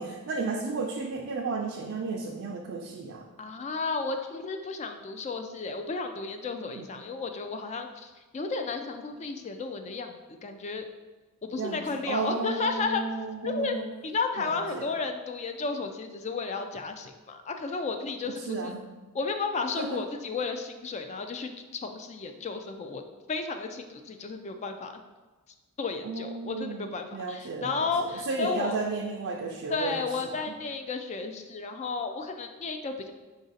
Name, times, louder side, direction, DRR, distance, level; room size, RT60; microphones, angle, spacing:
voice 1, 0.0-3.3 6.8-6.9 11.6-13.8 14.4-14.9 18.3-18.8 19.8-20.0 26.0-30.1, right 4 dB, 60° right, 0 dB, 0.4 m, -33 dB
voice 2, 3.4-10.9 11.4-13.0 13.4-13.8 14.0-18.7 19.1-23.0 23.3-24.9 25.8-28.8 29.7-33.1, left 4 dB, 30° left, 6 dB, 0.3 m, -33 dB
4.9 x 2.5 x 3.9 m, 1.3 s
head